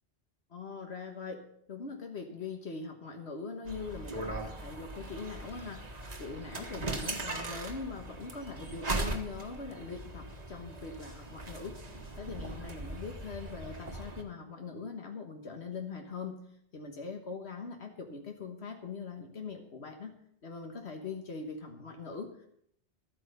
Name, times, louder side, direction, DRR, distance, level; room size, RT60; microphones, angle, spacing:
voice 1, 0.5-1.4 1.7-5.8 6.2-11.8 12.2-16.5 16.7-20.1 20.4-22.5, left 4 dB, 75° left, 3 dB, 1.7 m, -42 dB
sound 1, 3.6-14.2, right 2 dB, 40° right, 1.5 m, -39 dB
12.5 x 9.5 x 6.8 m, 0.68 s
omnidirectional pair, 1.1 m